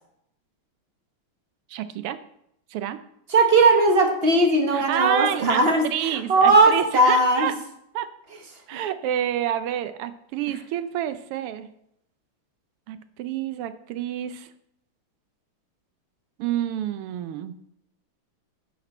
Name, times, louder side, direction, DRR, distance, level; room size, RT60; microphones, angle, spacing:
voice 1, 1.7-2.2 2.7-3.0 4.7-7.5 7.9-8.1 8.7-11.7 12.9-14.5 16.4-17.5, right 11 dB, 90° right, 12 dB, 1.6 m, -28 dB
voice 2, 3.3-7.5, right 2 dB, 35° right, 3 dB, 1.1 m, -18 dB
10.5 x 6.8 x 4.3 m, 0.76 s
omnidirectional pair, 2.4 m